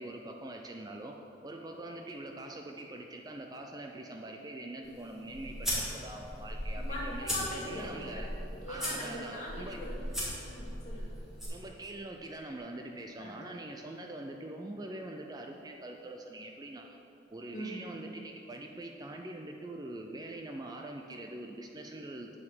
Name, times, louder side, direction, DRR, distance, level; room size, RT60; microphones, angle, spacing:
voice 1, 0.0-7.3 7.7-8.3 8.7-9.9 11.5-17.0 17.3-22.4, right 1 dB, 20° right, 3 dB, 0.4 m, -43 dB
sound 1, 4.8-11.5, equal, ahead, 2.5 m, -38 dB
voice 2, 6.8-8.3 8.6-11.3 13.2-13.4 17.5-17.8, equal, 40° left, -5 dB, 2.1 m, -42 dB
9.5 x 5.0 x 7.6 m, 3.0 s
head